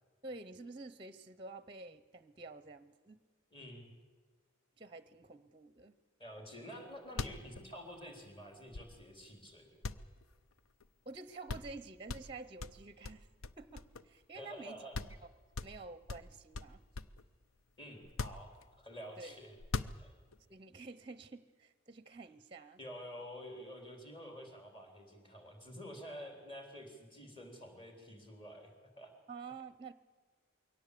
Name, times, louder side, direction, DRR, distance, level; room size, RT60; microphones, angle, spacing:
voice 1, 0.2-3.2 4.8-6.0 11.1-13.3 13.6-15.2 15.6-16.8 19.2-19.4 20.5-22.8 29.3-29.9, right 3 dB, 25° right, 15 dB, 0.7 m, -49 dB
voice 2, 3.5-3.9 6.2-9.8 14.3-14.9 17.8-19.6 20.0-20.1 22.8-28.7 29.0-29.1, equal, 25° left, 4 dB, 3.8 m, -49 dB
sound 1, 6.8-6.9 7.1-9.3 9.8-10.9 11.2-11.3 11.5-11.8 12.1-14.2 14.6-14.7 14.9-15.2 15.5-17.3 18.0-19.0 19.6-20.4, left 3 dB, 75° left, 0.7 m, -42 dB
22.5 x 17.5 x 8.4 m, 1.4 s
head